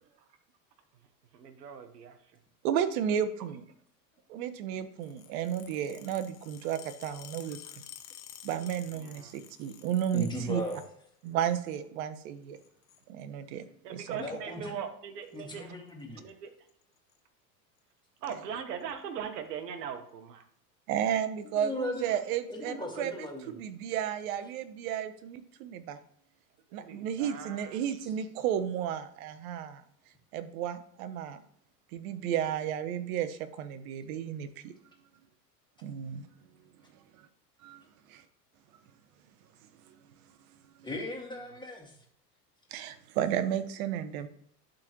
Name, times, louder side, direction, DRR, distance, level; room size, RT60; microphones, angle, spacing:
voice 1, 1.3-2.2 7.5-7.6 9.0-9.4 13.8-15.8 16.2-16.5 18.2-20.4 26.8-27.8, right 7 dB, 75° right, 8 dB, 1.2 m, -40 dB
voice 2, 2.6-3.6 4.3-7.6 8.4-10.6 11.2-12.6 13.1-13.6 13.9-14.2 20.9-26.0 26.7-29.8 30.3-31.4 31.9-34.7 35.8-36.3 37.1-37.3 37.6-37.8 38.1-38.2 39.9-40.0 42.7-44.3, right 9 dB, 60° right, 11 dB, 0.9 m, -33 dB
sound 1, 5.0-10.9 11.3-11.8 12.5-13.0 14.1-14.3 15.3-15.6 15.9-16.0 16.3-16.4 16.7-17.2 17.8-17.9 18.8-18.9, left 11 dB, 35° left, 0.9 m, -51 dB
voice 3, 10.1-10.8 14.2-14.8 15.3-16.3 21.6-22.1 22.5-23.5 40.8-41.9, left 1 dB, 10° left, 0 dB, 2.0 m, -37 dB
11.5 x 3.9 x 3.0 m, 0.68 s
hypercardioid pair, 90°, 49 cm